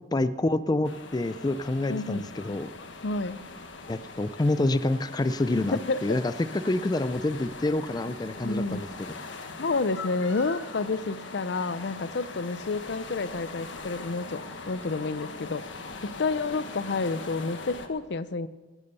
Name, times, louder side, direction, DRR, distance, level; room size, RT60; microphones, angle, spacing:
voice 1, 0.1-2.7 3.9-9.1, left 2 dB, 20° left, 14 dB, 0.4 m, -27 dB
sound 1, 0.8-17.9, left 3 dB, 85° left, 1.4 m, -41 dB
voice 2, 1.9-2.2 3.0-3.4 5.5-6.0 8.4-8.8 9.6-18.5, left 3 dB, 65° left, 16 dB, 0.6 m, -30 dB
18.0 x 10.5 x 6.8 m, 1.3 s
head